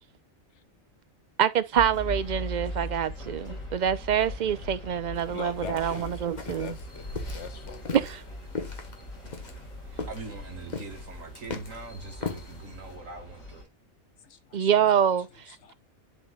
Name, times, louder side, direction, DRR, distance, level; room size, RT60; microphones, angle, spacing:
voice 1, 1.4-6.7 7.9-8.2 14.5-15.7, right 8 dB, 50° right, 0.5 m, -26 dB
sound 1, 1.7-13.6, left 1 dB, 85° left, 4.6 m, -40 dB
sound 2, 5.2-12.9, left 4 dB, 35° left, 1.2 m, -40 dB
voice 2, 5.3-8.0 14.2-14.7 15.6-15.7, left 6 dB, 60° left, 1.1 m, -42 dB
voice 3, 10.1-13.7, right 4 dB, 75° right, 2.1 m, -42 dB
11.0 x 4.8 x 2.3 m
omnidirectional pair, 1.4 m